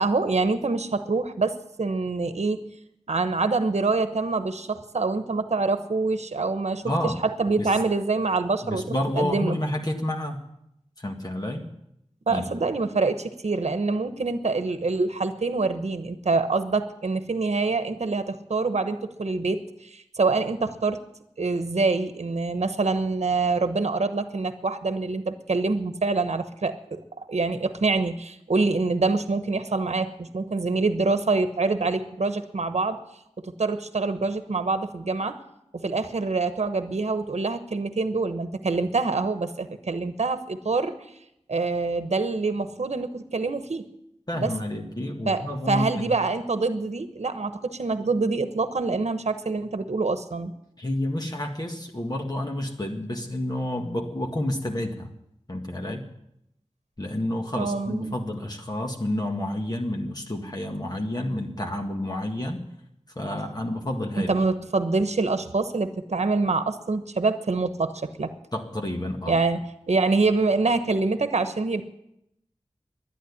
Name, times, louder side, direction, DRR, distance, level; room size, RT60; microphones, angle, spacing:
voice 1, 0.0-2.6 3.1-6.8 7.2-8.8 9.2-9.5 12.3-21.0 21.4-33.0 33.4-35.4 35.7-40.9 41.5-43.8 44.3-44.5 45.3-50.5 57.6-58.2 64.2-68.3 69.3-69.6 69.9-71.8, right 3 dB, 75° right, 10 dB, 1.0 m, -25 dB
voice 2, 6.8-7.2 7.5-7.8 8.6-10.4 11.0-11.7 12.3-12.5 44.3-46.1 50.8-55.1 55.5-56.1 57.0-62.6 63.2-64.3 68.5-69.4, left 1 dB, 35° left, 1 dB, 1.9 m, -29 dB
11.5 x 10.5 x 9.9 m, 0.80 s
wide cardioid pair, 60°, 11 cm